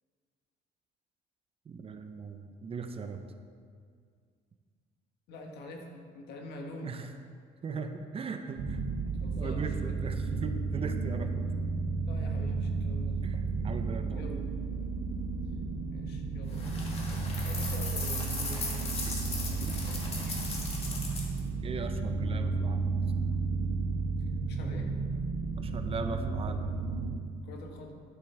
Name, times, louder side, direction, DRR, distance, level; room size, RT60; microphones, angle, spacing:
voice 1, 1.7-3.2 6.8-7.1 7.6-8.8 9.4-11.5 13.2-14.2 19.1-19.2 19.6-19.8 21.6-22.9 25.6-26.7, right 5 dB, 35° right, 7 dB, 0.6 m, -39 dB
voice 2, 5.3-6.9 9.2-10.0 12.1-13.2 14.1-14.4 15.9-16.9 17.4-20.4 24.2-24.9 27.4-28.0, left 2 dB, 75° left, 2 dB, 1.4 m, -46 dB
sound 1, 8.5-27.1, right 4 dB, 50° right, 1.8 m, -33 dB
sound 2, 16.5-21.4, left 3 dB, 35° left, 1.9 m, -38 dB
12.5 x 6.7 x 3.4 m, 2.1 s
cardioid pair, 110°, 17 cm